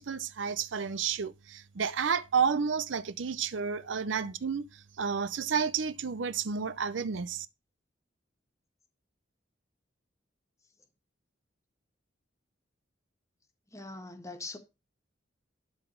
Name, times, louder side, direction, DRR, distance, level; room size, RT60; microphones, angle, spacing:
voice 1, 0.0-7.5, right 6 dB, 80° right, 0.6 m, -31 dB
voice 2, 13.7-14.6, left 2 dB, 15° left, 1.6 m, -42 dB
12.0 x 4.0 x 6.7 m
head